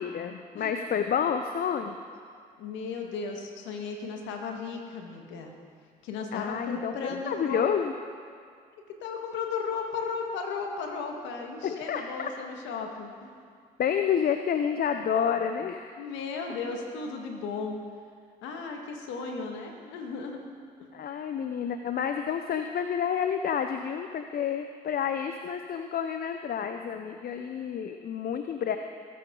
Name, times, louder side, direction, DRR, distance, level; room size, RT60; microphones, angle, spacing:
voice 1, 0.0-2.0 6.3-7.9 11.6-12.3 13.8-16.0 20.9-28.8, left 7 dB, 50° left, 7 dB, 0.7 m, -29 dB
voice 2, 2.6-5.5 6.0-7.7 8.9-13.3 16.0-17.8 18.4-20.4 20.8-20.9, left 4 dB, 75° left, 2 dB, 1.8 m, -35 dB
20.0 x 8.6 x 3.9 m, 2.1 s
hypercardioid pair, 55°, 19 cm